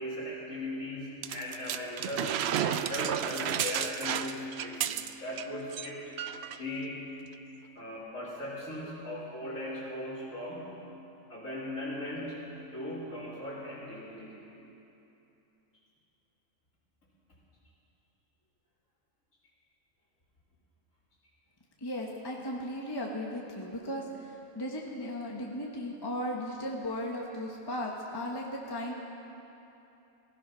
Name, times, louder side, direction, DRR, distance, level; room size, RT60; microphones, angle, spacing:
voice 1, 0.0-6.1 6.6-7.1 7.7-10.7 11.3-12.4 12.7-14.5, left 1 dB, 80° left, -8 dB, 2.8 m, -38 dB
sound 1, 1.2-5.4 5.7-5.9 6.2-6.6 7.3-7.4, right 10 dB, 65° right, 0.7 m, -32 dB
voice 2, 21.8-28.9, equal, 20° left, -1 dB, 1.2 m, -36 dB
16.0 x 15.5 x 5.7 m, 3.0 s
omnidirectional pair, 1.4 m